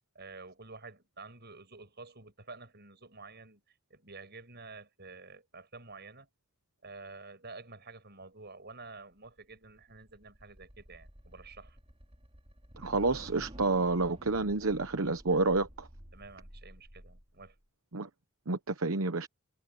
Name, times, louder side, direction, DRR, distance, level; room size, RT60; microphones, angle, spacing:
voice 1, 0.1-6.3 6.8-11.8 16.1-17.6, right 3 dB, 50° right, 7.6 m, -50 dB
sound 1, 9.2-17.6, equal, 25° right, 3.5 m, -51 dB
voice 2, 12.8-15.9 17.9-18.1 18.5-19.3, right 3 dB, 70° right, 1.0 m, -29 dB
head